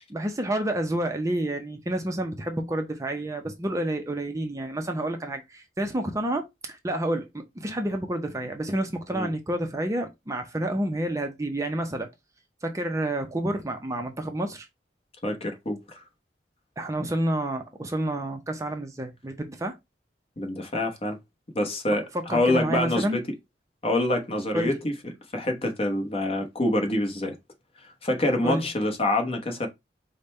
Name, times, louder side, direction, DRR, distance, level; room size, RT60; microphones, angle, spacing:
voice 1, 0.1-12.1 12.6-14.7 16.8-19.8 22.1-23.2 24.5-24.8 28.4-28.7, right 1 dB, 15° right, 0.5 m, -29 dB
voice 2, 15.2-15.8 20.4-21.2 21.5-22.0 22.3-23.2 23.8-27.4 28.0-29.7, left 1 dB, 35° left, 0.9 m, -26 dB
5.1 x 2.2 x 4.1 m
head